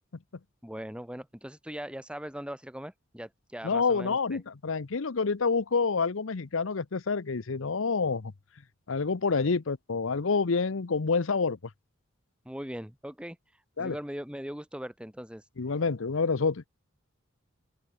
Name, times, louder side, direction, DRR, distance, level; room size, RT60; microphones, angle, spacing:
voice 1, 0.6-4.4 12.4-15.5, equal, 5° right, 2.5 m, -40 dB
voice 2, 3.6-8.3 8.9-11.6 13.8-13.9 15.6-16.6, left 4 dB, 75° left, 0.8 m, -28 dB
open air
head